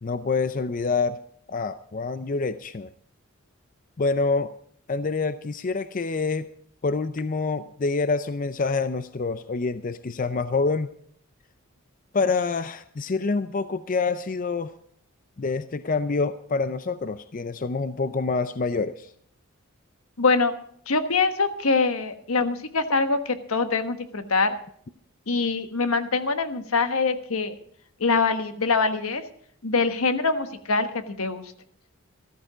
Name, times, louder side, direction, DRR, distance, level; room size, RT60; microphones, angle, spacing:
voice 1, 0.0-1.2 1.5-2.9 4.0-4.5 4.9-6.5 6.8-10.9 12.1-14.7 15.4-19.1, left 4 dB, 40° left, 12 dB, 0.5 m, -26 dB
voice 2, 20.2-20.5 20.9-24.5 25.3-27.5 28.0-29.2 29.6-30.9 31.2-31.4, left 4 dB, 80° left, 9 dB, 1.3 m, -24 dB
13.5 x 13.5 x 4.9 m, 0.63 s
head